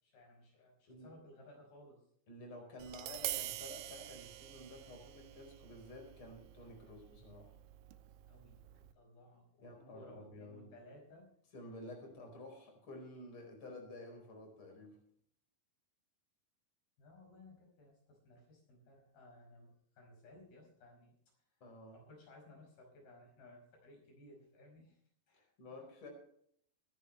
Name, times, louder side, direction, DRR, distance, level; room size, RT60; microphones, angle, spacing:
voice 1, 0.0-2.1 8.3-11.3 17.0-21.1 21.5-21.6 21.9-25.0 25.3-25.9, left 1 dB, 90° left, 1 dB, 7.1 m, -59 dB
voice 2, 2.3-7.6 9.6-10.7 11.5-15.0 21.6-22.0 25.6-26.1, left 1 dB, 35° left, 3 dB, 5.2 m, -51 dB
Tap, 2.8-8.9, right 14 dB, 85° right, 2.6 m, -46 dB
24.0 x 10.5 x 3.3 m, 0.65 s
omnidirectional pair, 4.1 m